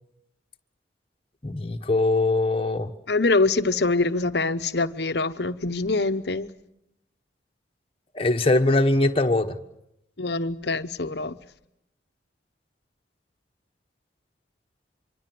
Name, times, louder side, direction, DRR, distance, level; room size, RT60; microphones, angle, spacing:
voice 1, 1.4-2.9 8.1-9.6, left 2 dB, 30° left, 1.2 m, -22 dB
voice 2, 3.1-6.5 10.2-11.4, left 3 dB, 60° left, 0.9 m, -24 dB
25.5 x 24.0 x 7.7 m
head